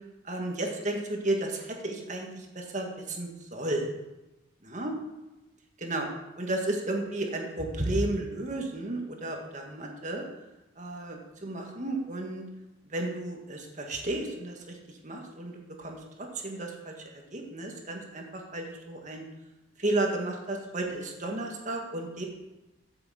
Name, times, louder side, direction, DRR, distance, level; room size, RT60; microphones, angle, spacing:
voice 1, 0.2-3.9 4.6-4.9 5.8-6.1 6.4-10.3 10.8-12.4 12.9-16.9 17.3-19.3 19.8-22.3, right 2 dB, 40° right, 1 dB, 1.7 m, -33 dB
8.4 x 6.9 x 7.5 m, 1.0 s
head